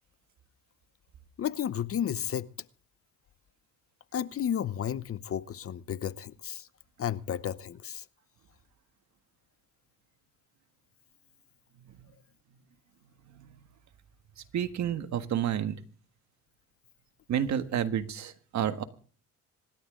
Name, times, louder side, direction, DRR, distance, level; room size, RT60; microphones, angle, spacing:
voice 1, 1.4-2.5 4.1-6.7 7.0-8.0, left 9 dB, 50° left, 0.8 m, -32 dB
voice 2, 14.5-15.8 17.3-18.8, right 9 dB, 65° right, 1.6 m, -30 dB
26.0 x 12.0 x 3.8 m
cardioid pair, 90°, 30 cm